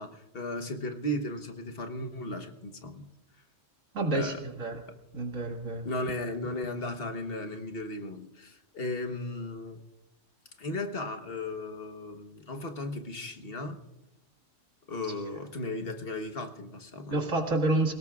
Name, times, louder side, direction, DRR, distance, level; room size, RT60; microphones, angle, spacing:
voice 1, 0.0-3.1 4.1-4.4 4.9-5.0 5.8-9.8 10.6-13.8 14.9-17.3, left 1 dB, 50° left, 6 dB, 1.4 m, -36 dB
voice 2, 3.9-4.8 5.1-5.9 15.0-15.1 17.1-17.9, right 2 dB, 85° right, 2 dB, 2.3 m, -29 dB
27.0 x 17.5 x 2.4 m, 0.95 s
omnidirectional pair, 1.3 m